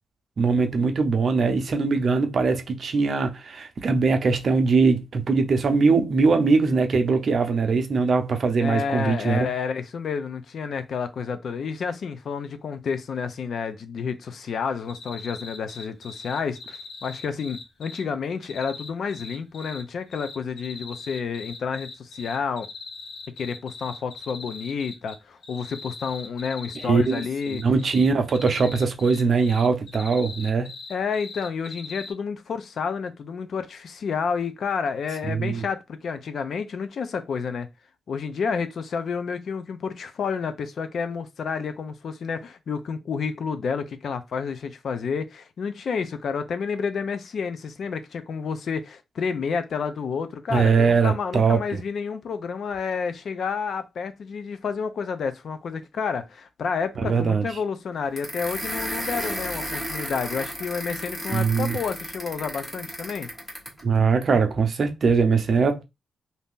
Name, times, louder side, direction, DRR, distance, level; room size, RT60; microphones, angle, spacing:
voice 1, 0.4-9.5 26.8-30.7 35.2-35.6 50.5-51.8 57.0-57.5 61.3-61.8 63.8-65.8, right 4 dB, 45° right, 0.6 m, -21 dB
voice 2, 8.6-22.7 23.4-27.6 30.9-37.7 38.1-63.3, left 6 dB, 60° left, 0.4 m, -30 dB
sound 1, 14.9-18.0 18.4-19.8 20.1-25.1 25.4-32.1, left 4 dB, 85° left, 1.1 m, -40 dB
sound 2, 58.2-63.8, equal, 10° left, 1.0 m, -33 dB
2.7 x 2.5 x 3.6 m
cardioid pair, 130°, 0 cm